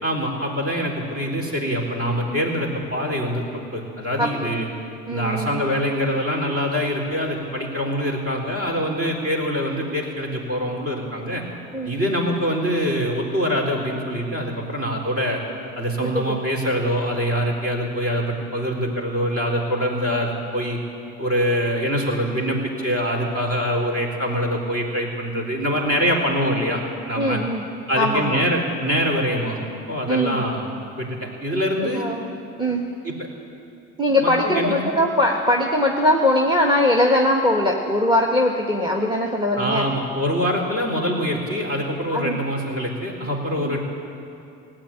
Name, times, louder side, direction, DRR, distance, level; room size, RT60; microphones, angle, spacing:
voice 1, 0.0-4.7 5.1-11.4 11.8-15.4 15.8-20.8 21.2-27.4 27.9-29.6 29.9-30.7 31.0-32.1 33.0-33.1 34.2-34.8 39.5-43.8, equal, 35° right, 0 dB, 4.1 m, -24 dB
voice 2, 5.1-5.6 11.7-11.9 16.0-16.1 27.2-27.7 28.0-28.4 30.1-30.4 31.8-32.3 32.6-32.9 34.0-39.9 42.1-42.4 43.6-43.7, left 1 dB, 10° right, 1 dB, 1.6 m, -21 dB
18.0 x 9.1 x 8.9 m, 2.6 s
hypercardioid pair, 60°, 41 cm